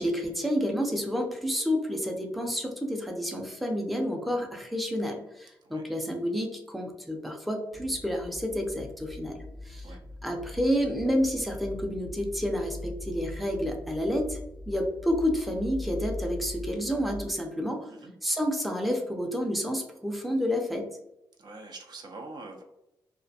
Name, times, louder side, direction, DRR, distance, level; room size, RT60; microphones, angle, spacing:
voice 1, 0.0-9.9 10.2-14.4 14.7-17.9 18.2-20.9, equal, ahead, 2 dB, 0.5 m, -29 dB
sound 1, 7.7-17.3, left 1 dB, 75° right, 1.0 m, -41 dB
voice 2, 21.4-22.6, right 3 dB, 60° right, 3 dB, 0.5 m, -44 dB
2.4 x 2.1 x 2.6 m, 0.89 s
cardioid pair, 70°, 8 cm